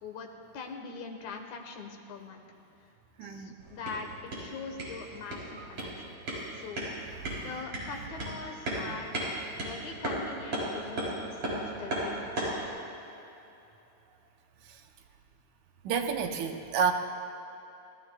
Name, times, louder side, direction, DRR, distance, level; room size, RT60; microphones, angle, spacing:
voice 1, 0.5-2.4 3.2-6.1 6.5-6.9 7.4-9.2 9.6-12.8, left 4 dB, 70° left, 3 dB, 2.6 m, -42 dB
voice 2, 3.2-3.5 15.9-16.9, right 6 dB, 75° right, 4 dB, 2.2 m, -29 dB
sound 1, 3.6-12.7, right 1 dB, 50° right, 5.3 m, -36 dB
26.5 x 18.0 x 2.3 m, 2.9 s
omnidirectional pair, 3.5 m